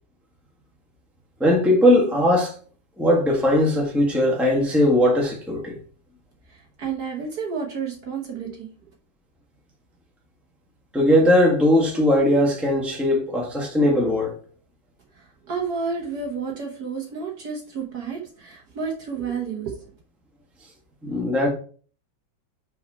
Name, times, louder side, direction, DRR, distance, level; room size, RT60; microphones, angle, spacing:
voice 1, 1.4-2.5 3.0-5.8 10.9-14.3 21.0-21.5, left 1 dB, ahead, 1.2 m, -19 dB
voice 2, 6.4-8.7 15.1-19.9, right 5 dB, 55° right, 1.5 m, -31 dB
5.7 x 4.2 x 4.2 m
omnidirectional pair, 2.2 m